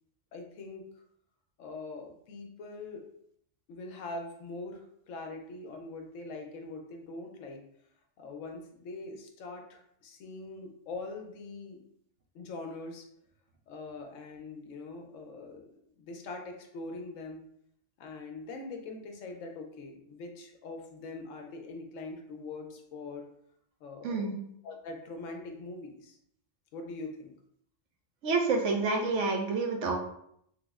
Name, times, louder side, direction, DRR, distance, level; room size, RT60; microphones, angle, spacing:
voice 1, 0.3-0.8 1.6-3.0 3.7-7.6 8.2-11.8 12.3-13.1 13.7-15.7 16.0-17.4 18.0-23.3 23.8-24.3 24.6-26.2 26.7-27.3, left 3 dB, 80° left, 3 dB, 1.0 m, -42 dB
voice 2, 24.0-24.4 28.2-30.0, right 3 dB, 75° right, 3 dB, 0.9 m, -28 dB
3.3 x 2.0 x 3.5 m, 0.71 s
omnidirectional pair, 1.3 m